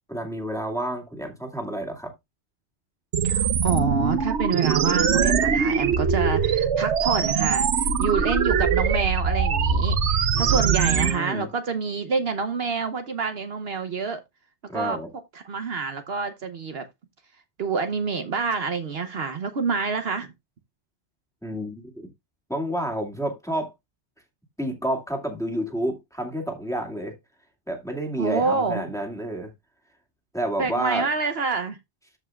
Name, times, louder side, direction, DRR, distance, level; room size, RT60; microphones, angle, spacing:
voice 1, 0.1-2.1 10.3-11.5 14.7-15.1 21.4-22.1 22.5-23.7 24.6-27.2 27.7-29.5 30.3-31.1, right 1 dB, 5° left, 2.2 m, -30 dB
sound 1, 3.1-11.1, right 6 dB, 80° right, 1.2 m, -22 dB
voice 2, 3.2-14.2 14.7-15.0 15.3-16.8 17.6-20.3 28.2-28.8 30.6-31.8, right 5 dB, 60° right, 1.1 m, -27 dB
14.0 x 5.4 x 2.3 m
omnidirectional pair, 1.2 m